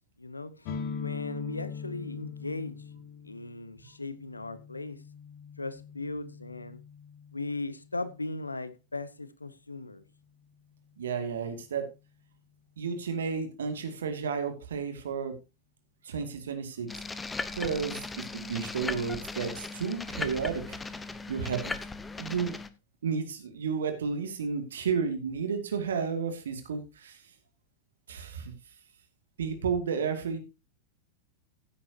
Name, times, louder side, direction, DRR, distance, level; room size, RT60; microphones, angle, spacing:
voice 1, 0.2-0.7 1.0-2.8 3.2-5.0 5.6-6.8 7.3-10.0, left 2 dB, 80° left, 1.0 m, -37 dB
sound 1, 0.6-8.3, left 6 dB, 45° left, 2.0 m, -42 dB
voice 2, 11.0-11.9 12.8-15.3 16.0-16.9 17.5-20.8 21.3-21.7 22.2-22.6 23.0-27.2 28.1-28.5 29.4-30.4, right 6 dB, 65° right, 2.5 m, -32 dB
sound 2, 16.9-22.7, left 3 dB, 10° left, 0.9 m, -38 dB
16.0 x 8.7 x 2.9 m
figure-of-eight pair, 90°, 0 cm